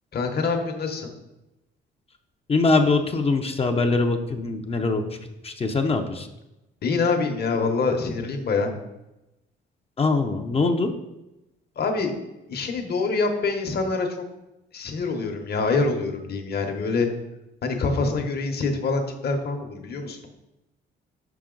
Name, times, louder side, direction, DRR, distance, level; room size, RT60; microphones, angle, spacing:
voice 1, 0.1-1.1 6.8-8.7 11.8-12.1 12.5-14.2 14.7-17.1 17.6-20.3, left 4 dB, 55° left, 4 dB, 1.1 m, -25 dB
voice 2, 2.5-5.1 5.4-6.3 10.0-10.9, left 3 dB, 30° left, 4 dB, 0.6 m, -22 dB
5.9 x 5.4 x 3.8 m, 0.95 s
cardioid pair, 90°, 20 cm